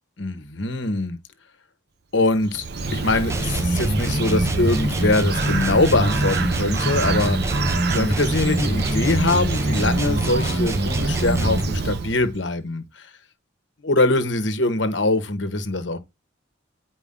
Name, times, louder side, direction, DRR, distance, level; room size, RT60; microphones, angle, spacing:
voice 1, 0.2-1.2 2.1-2.6 2.9-7.6 7.9-13.1 13.8-16.0, left 2 dB, 65° left, 1.3 m, -23 dB
Bird, 2.3-12.4, right 3 dB, 55° right, 0.8 m, -26 dB
sound 1, 3.3-11.8, right 1 dB, 15° right, 0.7 m, -25 dB
10.0 x 5.0 x 3.8 m
head